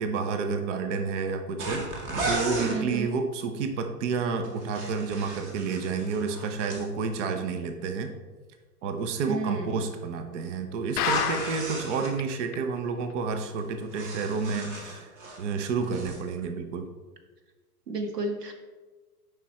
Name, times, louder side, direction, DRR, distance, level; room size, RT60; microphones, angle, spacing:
voice 1, 0.0-8.1 8.8-15.1 15.4-16.9, right 5 dB, 50° right, 6 dB, 0.9 m, -30 dB
sound 1, 1.6-2.8 4.4-6.9 10.9-12.1 13.6-15.5 15.8-16.2, right 2 dB, 30° right, 1.4 m, -34 dB
voice 2, 2.7-3.1 9.3-9.7 17.9-18.5, right 2 dB, 90° right, 5 dB, 1.2 m, -31 dB
sound 2, 11.0-11.8 12.2-12.3 12.5-12.6 13.1-13.2, left 11 dB, 70° left, 0.6 m, -29 dB
7.1 x 5.1 x 4.3 m, 1.3 s
hypercardioid pair, 120°, 46 cm